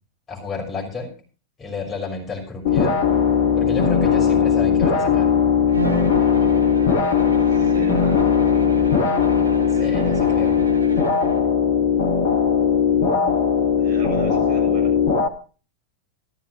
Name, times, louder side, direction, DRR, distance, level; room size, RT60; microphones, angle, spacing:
voice 1, 0.3-1.1 1.6-3.0 3.5-5.3 9.7-10.6, left 4 dB, 20° left, -2 dB, 5.7 m, -31 dB
sound 1, 2.6-15.3, left 7 dB, 55° left, 1.6 m, -19 dB
Bowed string instrument, 5.7-11.5, right 4 dB, 70° right, 2.4 m, -32 dB
voice 2, 7.5-8.3 12.8-13.4 13.8-15.0, right 2 dB, 35° right, 0 dB, 7.8 m, -35 dB
14.5 x 13.5 x 3.1 m, 0.35 s
figure-of-eight pair, 90°, 0 cm